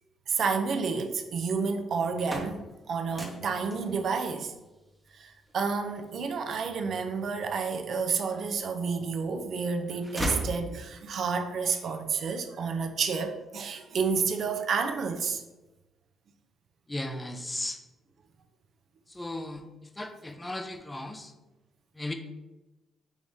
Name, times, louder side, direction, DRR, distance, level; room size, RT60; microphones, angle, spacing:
voice 1, 0.3-4.5 5.1-15.4, right 5 dB, 60° right, 6 dB, 0.5 m, -30 dB
sound 1, 2.0-7.9 8.5-9.3 9.6-11.2, equal, 10° right, 0.9 m, -38 dB
voice 2, 16.9-17.8 19.1-19.6 20.0-21.3 22.0-22.1, left 1 dB, 15° left, 6 dB, 0.5 m, -36 dB
4.8 x 2.6 x 3.5 m, 1.1 s
cardioid pair, 90°, 0 cm